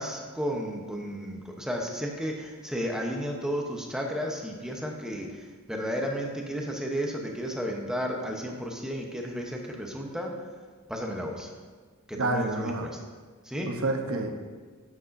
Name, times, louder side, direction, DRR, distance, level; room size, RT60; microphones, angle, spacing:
voice 1, 0.0-10.3 10.9-11.5 12.1-13.0 13.5-13.7, equal, 5° right, 0 dB, 0.9 m, -33 dB
voice 2, 12.1-12.9 13.7-14.3, right 2 dB, 65° right, 4 dB, 0.9 m, -28 dB
9.8 x 8.2 x 2.6 m, 1.5 s
head